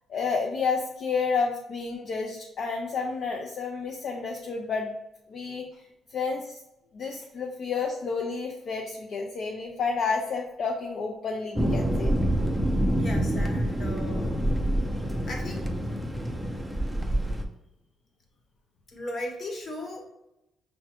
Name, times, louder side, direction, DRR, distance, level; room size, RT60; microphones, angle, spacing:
voice 1, 0.1-5.0 5.3-5.6 6.1-6.6 6.9-12.2, left 4 dB, 65° left, 1 dB, 0.4 m, -30 dB
Thunder, 11.5-17.5, right 1 dB, ahead, 0.5 m, -27 dB
voice 2, 12.9-14.4 15.3-15.7 18.9-20.1, left 1 dB, 50° left, 0 dB, 1.0 m, -37 dB
5.6 x 2.1 x 2.9 m, 0.88 s
cardioid pair, 90°, 0 cm